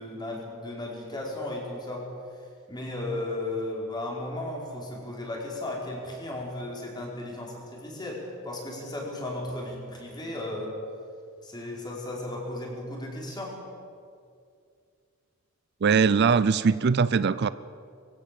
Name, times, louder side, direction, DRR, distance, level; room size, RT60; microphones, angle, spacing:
voice 1, 0.0-2.0 2.7-10.7 11.4-13.5, left 1 dB, 20° left, -2 dB, 4.7 m, -35 dB
voice 2, 15.8-17.5, right 5 dB, 50° right, 16 dB, 0.4 m, -21 dB
23.0 x 16.0 x 7.6 m, 2.3 s
head